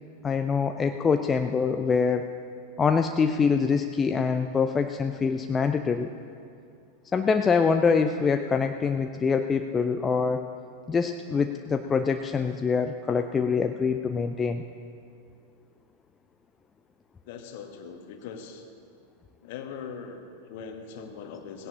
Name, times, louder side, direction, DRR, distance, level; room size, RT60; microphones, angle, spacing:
voice 1, 0.2-2.3 2.8-6.1 7.1-10.5 10.9-14.6, left 5 dB, 20° left, 6 dB, 0.4 m, -25 dB
voice 2, 17.2-18.7 19.4-21.7, left 6 dB, 50° left, 5 dB, 1.3 m, -41 dB
18.0 x 16.5 x 2.9 m, 2.3 s
figure-of-eight pair, 90°, 0 cm